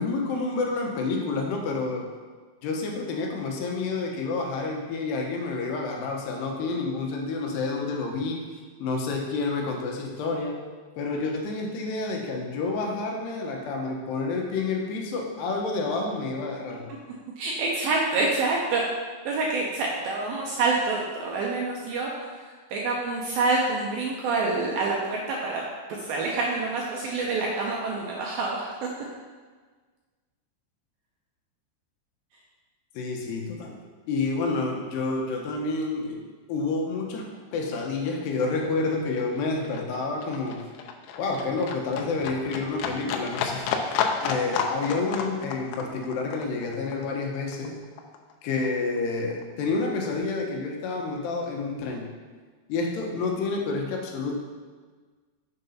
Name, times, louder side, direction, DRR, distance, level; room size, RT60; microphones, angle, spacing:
voice 1, 0.0-2.1 2.6-8.5 8.8-10.6 11.0-16.9 32.9-33.8 34.1-40.7 41.2-47.8 48.4-52.1 52.7-54.3, left 3 dB, 70° left, 1 dB, 2.9 m, -29 dB
voice 2, 17.4-18.8 19.2-25.6 25.9-28.9, right 3 dB, 80° right, -2 dB, 2.2 m, -27 dB
Livestock farm animals working animals, 36.9-37.1 37.3-48.3 48.6-49.7 50.0-50.1, left 6 dB, 85° left, 3.0 m, -32 dB
7.9 x 6.7 x 5.6 m, 1.4 s
omnidirectional pair, 5.4 m